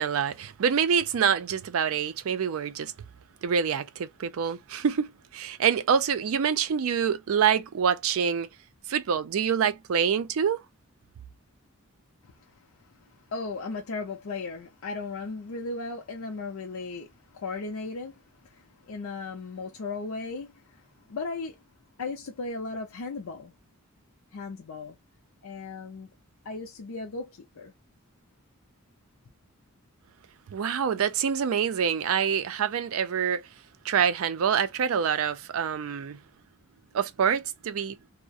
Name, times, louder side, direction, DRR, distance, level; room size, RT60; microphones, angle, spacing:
voice 1, 0.0-2.9 3.4-8.5 8.9-10.6 30.5-33.4 33.8-36.2 36.9-38.0, right 7 dB, 75° right, 0.4 m, -26 dB
voice 2, 13.3-18.1 18.4-20.8 21.1-21.6 22.0-23.5 24.3-25.0 25.4-26.1 26.4-27.7, left 3 dB, 85° left, 0.5 m, -36 dB
2.3 x 2.1 x 2.6 m
head